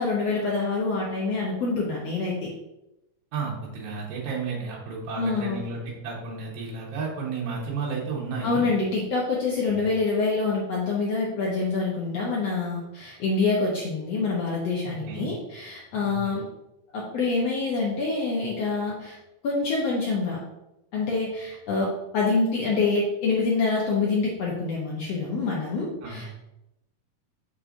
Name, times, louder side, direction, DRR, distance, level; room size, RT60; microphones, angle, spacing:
voice 1, 0.0-2.5 5.2-5.7 8.4-16.5 16.9-19.2 19.4-20.4 20.9-26.4, left 3 dB, 75° left, -4 dB, 1.5 m, -26 dB
voice 2, 3.3-8.7 9.7-9.9 15.1-15.3 16.0-16.3 26.0-26.2, right 4 dB, 75° right, -3 dB, 3.1 m, -32 dB
6.4 x 6.2 x 2.6 m, 0.90 s
omnidirectional pair, 4.2 m